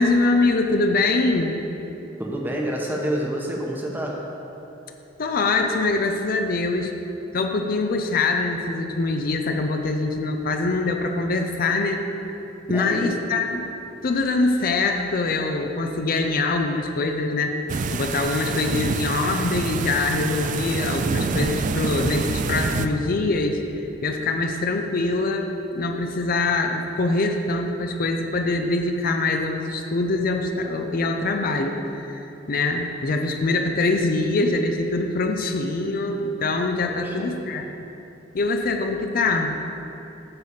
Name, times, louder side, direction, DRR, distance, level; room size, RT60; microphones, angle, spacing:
voice 1, 0.0-1.6 5.2-6.9 7.3-12.0 12.7-13.7 14.0-23.6 24.0-37.7 38.3-39.5, left 3 dB, 50° left, 4 dB, 0.5 m, -24 dB
voice 2, 2.2-4.3 12.7-13.2 36.9-37.3, equal, 10° right, -2 dB, 1.0 m, -28 dB
sound 1, 17.7-22.9, right 4 dB, 45° right, 0.3 m, -26 dB
9.6 x 4.1 x 7.0 m, 3.0 s
head